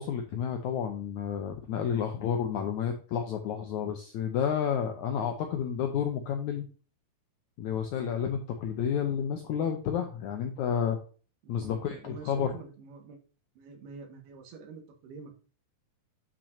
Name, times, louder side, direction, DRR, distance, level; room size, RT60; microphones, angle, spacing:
voice 1, 0.0-6.7 7.6-11.0 11.5-12.5, left 8 dB, 80° left, 4 dB, 1.7 m, -30 dB
voice 2, 11.4-13.2 13.6-15.3, right 5 dB, 85° right, 3 dB, 3.6 m, -46 dB
8.5 x 6.0 x 2.7 m, 0.38 s
omnidirectional pair, 4.4 m